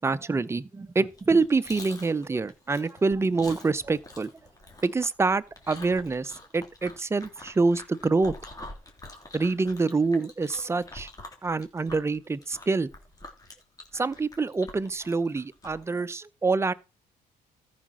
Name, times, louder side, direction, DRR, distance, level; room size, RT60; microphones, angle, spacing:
voice 1, 0.0-4.3 4.8-8.3 9.3-11.1 11.4-12.9 13.9-16.7, right 3 dB, 15° right, 0.7 m, -26 dB
Chewing mastication, 1.1-15.9, left 2 dB, 20° left, 3.2 m, -46 dB
14.0 x 5.0 x 6.2 m
cardioid pair, 110°, 17 cm